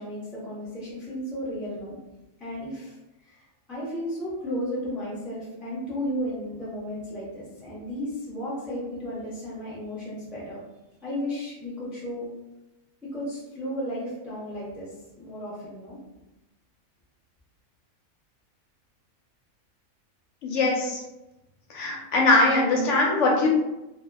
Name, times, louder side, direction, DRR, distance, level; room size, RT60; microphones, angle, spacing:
voice 1, 0.0-2.0 2.4-3.0 3.2-10.6 11.0-12.3 13.0-16.0, equal, ahead, -6 dB, 0.4 m, -34 dB
voice 2, 20.4-21.0 21.7-23.5, left 2 dB, 65° left, -1 dB, 0.8 m, -21 dB
2.2 x 2.1 x 3.3 m, 0.97 s
omnidirectional pair, 1.4 m